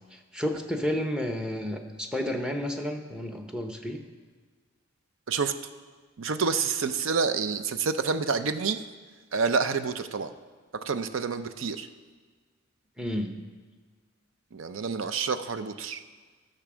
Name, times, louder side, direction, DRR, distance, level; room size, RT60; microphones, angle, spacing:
voice 1, 0.0-4.0 13.0-13.4, equal, 5° right, 4 dB, 0.8 m, -31 dB
voice 2, 6.2-8.8 9.3-10.3 10.7-11.9 14.5-16.0, right 5 dB, 65° right, 11 dB, 0.6 m, -28 dB
12.0 x 6.7 x 6.1 m, 1.5 s
head